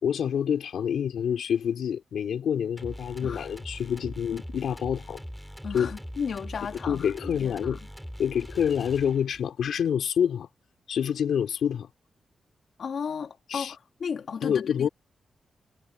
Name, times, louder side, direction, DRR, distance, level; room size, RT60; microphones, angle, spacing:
voice 1, 0.0-5.2 5.7-5.9 6.9-7.8 8.2-10.5 10.9-11.9 13.5-13.7 14.4-14.9, left 8 dB, 85° left, 3.5 m, -27 dB
sound 1, 2.8-9.5, equal, ahead, 4.2 m, -41 dB
voice 2, 5.6-7.1 7.4-7.8 12.8-14.9, left 6 dB, 55° left, 2.2 m, -34 dB
wide cardioid pair, 165°, 0 cm